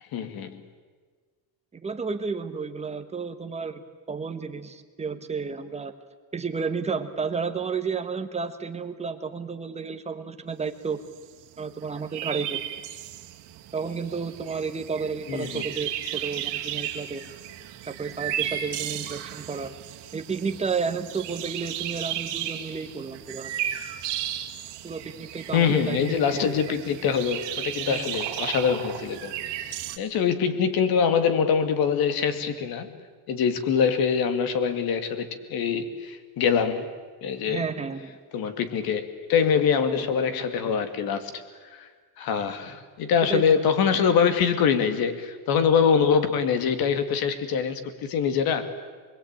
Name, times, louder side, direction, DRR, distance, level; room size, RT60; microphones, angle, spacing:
voice 1, 0.1-0.6 15.3-15.7 25.5-29.3 30.0-32.9 33.3-36.9 37.2-37.6 38.3-41.3 41.7-41.9 42.2-48.7, left 7 dB, 50° left, 9 dB, 2.3 m, -24 dB
voice 2, 1.7-3.8 4.1-5.9 6.3-11.0 11.6-12.6 13.7-17.2 17.9-19.7 20.1-23.5 24.8-26.6 27.9-28.1 37.4-38.2 43.3-43.4, right 5 dB, 15° right, 7 dB, 1.2 m, -31 dB
sound 1, 11.2-11.3 11.4-11.5 11.7-30.0, right 11 dB, 60° right, 2.2 m, -34 dB
27.5 x 22.0 x 8.9 m, 1.5 s
cardioid pair, 175°, 47 cm